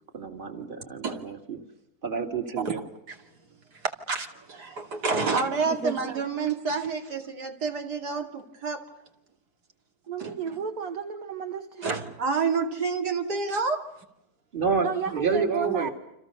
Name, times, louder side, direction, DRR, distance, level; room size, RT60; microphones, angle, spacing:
voice 1, 0.1-1.6 2.0-2.8 14.5-15.9, right 5 dB, 30° right, 2.6 m, -29 dB
voice 2, 3.8-8.8 10.2-10.6 11.8-13.9, right 4 dB, 75° right, 3.2 m, -29 dB
voice 3, 10.1-11.9 14.8-15.9, right 6 dB, 60° right, 2.2 m, -32 dB
29.5 x 26.5 x 6.8 m
omnidirectional pair, 1.7 m